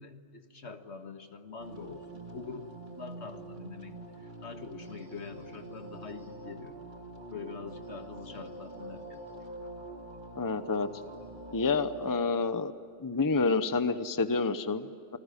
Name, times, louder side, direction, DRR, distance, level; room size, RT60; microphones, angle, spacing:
voice 1, 0.0-2.7 3.0-4.0 4.4-6.8 7.3-9.2, left 5 dB, 65° left, 7 dB, 1.9 m, -44 dB
sound 1, 1.6-12.3, right 2 dB, 40° right, 2.0 m, -45 dB
voice 2, 10.3-10.9 11.5-12.7 13.0-15.2, left 4 dB, 20° left, 11 dB, 0.8 m, -28 dB
28.5 x 20.0 x 10.0 m, 2.4 s
omnidirectional pair, 1.2 m